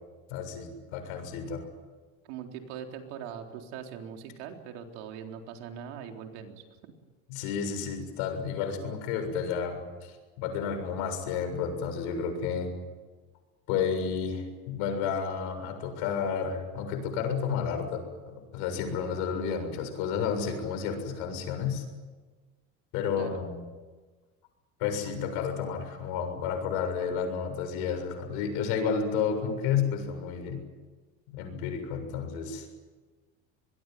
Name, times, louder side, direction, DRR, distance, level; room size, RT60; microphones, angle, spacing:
voice 1, 0.3-1.6 7.3-12.7 13.7-21.8 22.9-23.6 24.8-30.6 31.3-32.7, left 6 dB, 75° left, 6 dB, 7.0 m, -31 dB
voice 2, 2.3-6.9 23.2-23.4, right 8 dB, 85° right, 3 dB, 4.0 m, -41 dB
25.0 x 21.5 x 9.4 m, 1.3 s
cardioid pair, 150°, 33 cm